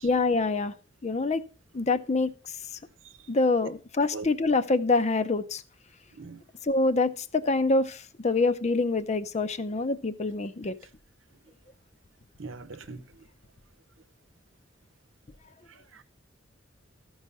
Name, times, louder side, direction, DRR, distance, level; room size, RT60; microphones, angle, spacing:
voice 1, 0.0-0.7 1.0-1.4 1.7-2.3 3.3-5.6 6.6-10.8, left 3 dB, 35° left, 0.6 m, -25 dB
voice 2, 12.4-13.0, right 3 dB, 90° right, 0.9 m, -39 dB
14.0 x 4.8 x 5.4 m
head